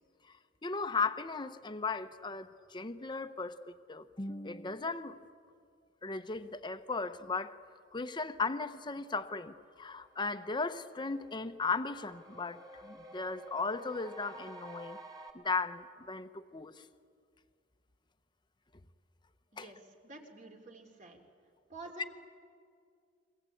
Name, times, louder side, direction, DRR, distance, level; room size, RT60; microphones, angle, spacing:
voice 1, 0.6-5.2 6.0-7.5 7.9-15.0 15.3-16.7 19.6-19.7, left 4 dB, 25° left, 9 dB, 0.9 m, -36 dB
sound 1, 10.0-15.3, right 2 dB, 20° right, 2.8 m, -52 dB
voice 2, 19.5-21.2 21.7-22.1, right 2 dB, 40° right, 4 dB, 3.3 m, -49 dB
29.5 x 22.5 x 8.5 m, 2.2 s
head